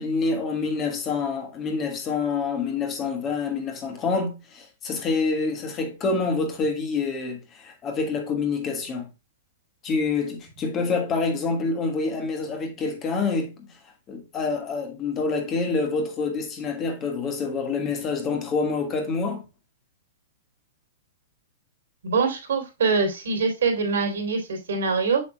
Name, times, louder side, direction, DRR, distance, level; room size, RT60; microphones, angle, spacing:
voice 1, 0.0-9.1 9.8-13.5 14.1-19.4, left 4 dB, 20° left, 1.5 m, -27 dB
voice 2, 22.0-25.2, right 4 dB, 85° right, 3.2 m, -24 dB
7.0 x 6.7 x 2.2 m
hypercardioid pair, 160°, 0 cm